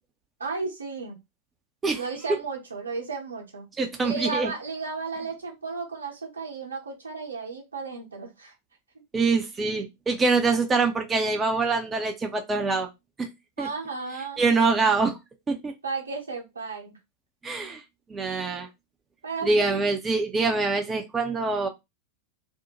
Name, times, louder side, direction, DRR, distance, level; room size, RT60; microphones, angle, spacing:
voice 1, 0.4-1.2 2.0-3.7 4.0-8.5 13.6-14.4 15.8-16.9 19.2-19.8, right 4 dB, 75° right, 1 dB, 0.8 m, -34 dB
voice 2, 3.8-4.5 9.1-12.9 13.2-13.3 13.6-13.7 14.4-15.2 15.5-15.7 17.4-17.8 18.1-18.7 19.4-21.7, right 3 dB, 15° right, 4 dB, 0.4 m, -24 dB
2.5 x 2.1 x 2.9 m, 0.22 s
figure-of-eight pair, 90°, 0 cm